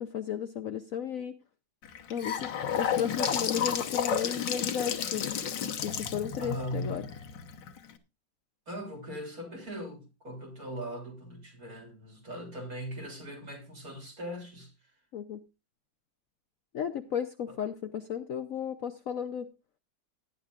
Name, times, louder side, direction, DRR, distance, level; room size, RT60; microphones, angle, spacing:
voice 1, 0.0-1.4 2.1-2.5 2.8-5.4 5.8-7.0 15.1-15.4 16.7-19.5, left 8 dB, 60° left, 0.9 m, -34 dB
Gurgling / Sink (filling or washing) / Bathtub (filling or washing), 1.8-7.9, left 8 dB, 75° left, 1.8 m, -32 dB
voice 2, 6.4-7.1 8.7-14.7 17.5-17.6, equal, 50° right, 3.6 m, -40 dB
17.5 x 10.0 x 2.5 m
omnidirectional pair, 2.0 m